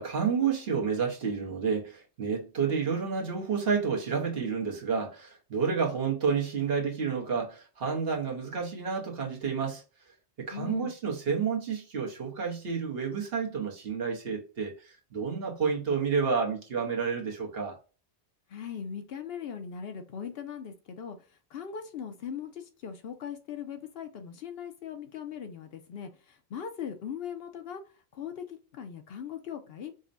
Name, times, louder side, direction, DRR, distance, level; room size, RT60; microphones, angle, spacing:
voice 1, 0.0-9.8 10.4-17.8, right 6 dB, 65° right, 1.1 m, -30 dB
voice 2, 10.5-10.9 18.5-21.2 21.5-26.1 26.5-27.8 28.1-29.9, left 8 dB, 65° left, 0.8 m, -39 dB
5.2 x 2.1 x 2.5 m
omnidirectional pair, 1.1 m